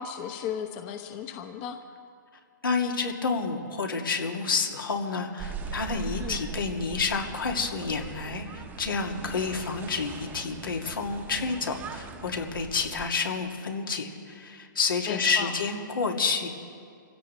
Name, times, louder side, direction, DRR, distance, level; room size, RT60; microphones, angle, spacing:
voice 1, 0.0-1.8 6.2-6.4 15.1-15.5, left 8 dB, 35° left, 6 dB, 1.0 m, -35 dB
voice 2, 2.6-16.5, left 4 dB, 85° left, 1 dB, 2.4 m, -29 dB
sound 1, 5.4-13.1, right 5 dB, 15° right, 0.9 m, -40 dB
25.5 x 16.0 x 3.3 m, 2.3 s
hypercardioid pair, 140°, 11 cm